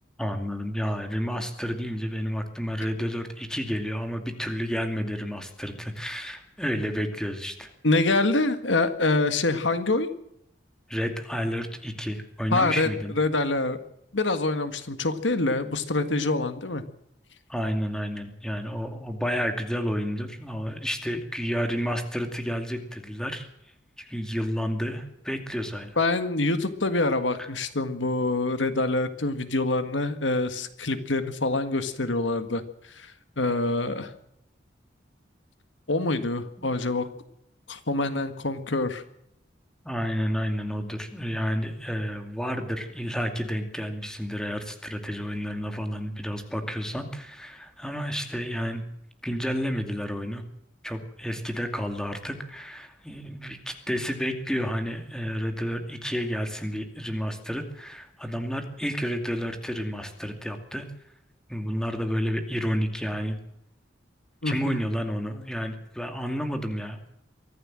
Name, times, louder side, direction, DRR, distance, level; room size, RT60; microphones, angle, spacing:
voice 1, 0.2-7.7 10.9-13.1 17.5-23.5 24.0-26.0 27.4-27.5 36.6-36.7 39.8-48.8 49.2-50.4 50.8-60.9 61.5-63.4 64.4-67.0, equal, 5° left, 6 dB, 2.5 m, -30 dB
voice 2, 7.8-10.1 12.5-12.9 13.2-13.8 14.1-16.8 26.0-32.6 32.9-34.1 35.9-37.1 37.7-39.0 64.4-64.8, left 2 dB, 80° left, 10 dB, 1.7 m, -25 dB
23.5 x 14.5 x 7.6 m, 0.77 s
head